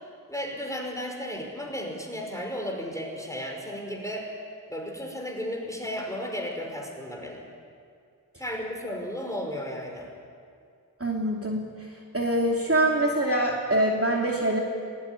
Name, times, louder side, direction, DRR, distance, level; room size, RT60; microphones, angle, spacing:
voice 1, 0.3-4.3 4.7-7.4 8.4-10.1, equal, 5° left, 1 dB, 5.5 m, -34 dB
voice 2, 11.0-11.6 12.1-14.6, right 1 dB, 35° right, -1 dB, 2.8 m, -24 dB
20.0 x 18.5 x 9.7 m, 2.4 s
wide cardioid pair, 40°, 42 cm